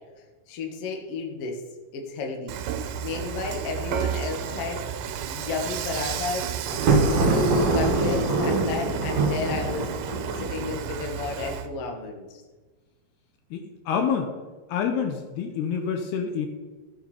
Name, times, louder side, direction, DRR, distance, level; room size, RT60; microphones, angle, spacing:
voice 1, 0.5-1.6 1.9-4.8 5.3-6.5 7.0-9.9 10.4-12.4, left 4 dB, 55° left, 2 dB, 1.7 m, -32 dB
Dishes pots and pans / Frying (food), 2.5-11.7, right 8 dB, 80° right, 3.1 m, -32 dB
Thunder, 6.7-10.8, right 3 dB, 55° right, 3.4 m, -24 dB
voice 2, 13.5-14.3 14.7-16.5, left 7 dB, 75° left, 5 dB, 2.7 m, -27 dB
14.5 x 8.6 x 4.4 m, 1.3 s
omnidirectional pair, 5.2 m